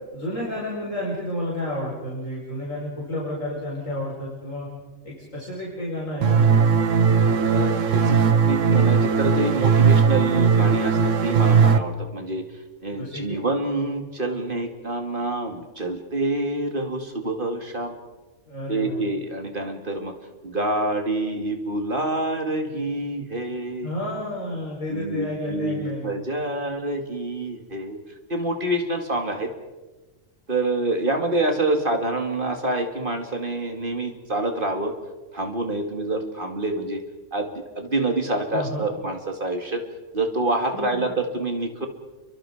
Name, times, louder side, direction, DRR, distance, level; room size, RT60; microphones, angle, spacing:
voice 1, 0.1-4.7 5.0-6.6 12.9-13.4 18.4-19.0 23.8-26.1 38.5-38.9 40.7-41.0, left 1 dB, 85° left, -5 dB, 5.9 m, -31 dB
sound 1, 6.2-11.8, right 6 dB, 75° right, 1.5 m, -18 dB
voice 2, 7.4-12.4 12.8-18.0 18.7-20.1 20.4-24.0 24.9-28.0 28.3-29.5 30.5-34.9 35.3-37.0 37.3-37.5 37.8-39.8 40.1-41.9, right 2 dB, 40° right, 4 dB, 2.7 m, -27 dB
29.5 x 23.5 x 5.0 m, 1.2 s
omnidirectional pair, 1.3 m